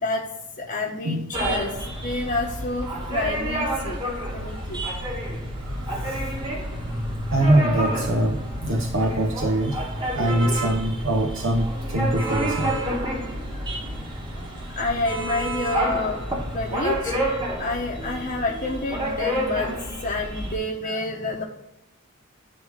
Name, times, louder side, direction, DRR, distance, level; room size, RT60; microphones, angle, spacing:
voice 1, 0.6-4.0 4.3-4.8 14.4-16.2 16.5-17.2 17.6-21.4, left 2 dB, 40° left, -2 dB, 0.9 m, -28 dB
sound 1, 1.3-20.6, right 1 dB, 25° right, 1.4 m, -29 dB
voice 2, 5.6-6.2 7.3-9.9 10.1-12.8, right 1 dB, 65° right, 1 dB, 0.8 m, -23 dB
10.5 x 3.5 x 3.5 m, 0.86 s
head